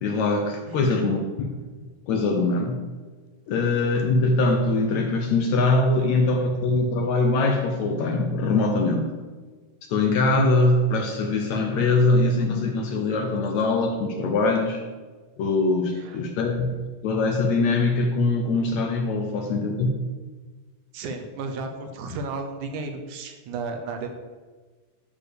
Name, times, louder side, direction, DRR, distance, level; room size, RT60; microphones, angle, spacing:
voice 1, 0.0-1.6 2.1-2.8 3.5-9.1 9.9-14.8 15.4-16.7 17.0-20.0, left 2 dB, 70° left, 3 dB, 1.8 m, -22 dB
voice 2, 0.7-1.0 16.0-16.3 20.9-24.1, right 3 dB, 70° right, 5 dB, 2.2 m, -33 dB
11.5 x 4.6 x 6.7 m, 1.4 s
omnidirectional pair, 3.9 m